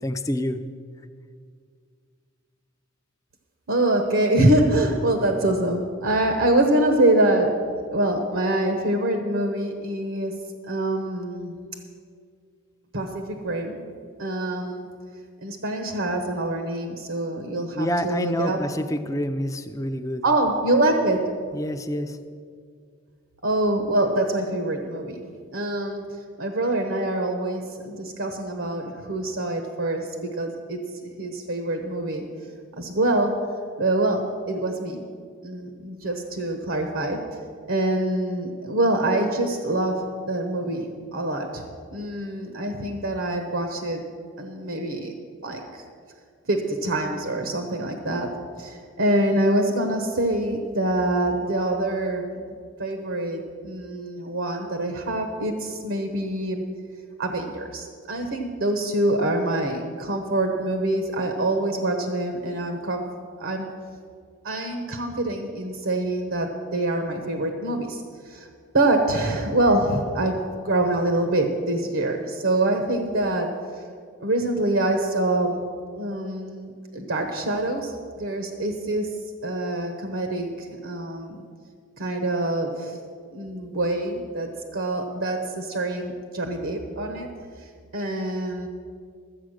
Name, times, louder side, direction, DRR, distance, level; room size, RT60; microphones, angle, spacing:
voice 1, 0.0-0.6 17.7-20.2 21.5-22.2, equal, 15° left, 8 dB, 0.4 m, -27 dB
voice 2, 3.7-7.5 7.9-10.3 10.7-11.7 12.9-13.8 14.2-14.9 15.4-18.6 20.2-21.2 23.4-26.0 26.4-32.3 32.8-33.3 33.8-35.0 35.4-37.2 37.7-41.6 41.9-44.0 44.4-45.1 45.4-45.8 46.5-48.3 48.6-52.4 52.8-56.6 57.2-63.0 63.4-63.7 64.4-68.5 68.7-73.8 74.2-75.6 76.0-79.1 79.4-81.5 82.0-83.0 83.3-87.3 87.6-88.7, right 1 dB, 70° right, 4 dB, 1.0 m, -25 dB
13.0 x 8.1 x 6.4 m, 2.1 s
head